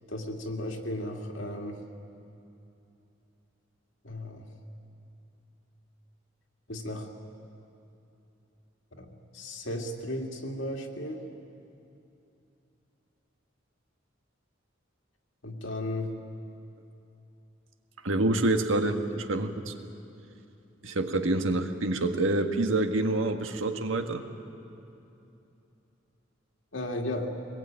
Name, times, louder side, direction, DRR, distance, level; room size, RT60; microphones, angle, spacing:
voice 1, 0.1-1.8 4.0-4.5 6.7-7.1 8.9-11.2 15.4-16.1 26.7-27.3, left 1 dB, 70° left, 2 dB, 2.4 m, -35 dB
voice 2, 18.0-19.7 20.8-24.2, right 2 dB, 90° right, 5 dB, 1.6 m, -27 dB
24.0 x 20.5 x 9.0 m, 2.8 s
head